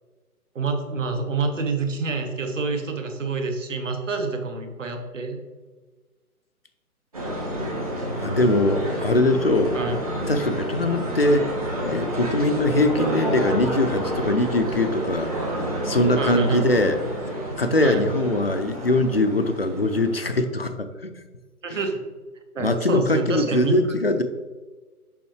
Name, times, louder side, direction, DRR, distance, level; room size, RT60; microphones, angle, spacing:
voice 1, 0.5-5.4 9.7-10.0 16.2-16.6 17.8-18.0 21.6-21.9 22.5-23.9, right 3 dB, 55° right, 5 dB, 1.2 m, -27 dB
sound 1, 7.1-20.4, right 1 dB, 25° right, 1.0 m, -29 dB
voice 2, 8.2-9.8 10.3-11.5 11.8-15.3 15.8-17.0 17.6-21.1 21.7-21.8 22.6-24.2, left 2 dB, 45° left, 8 dB, 0.4 m, -22 dB
7.1 x 5.5 x 3.1 m, 1.3 s
hypercardioid pair, 170°, 45 cm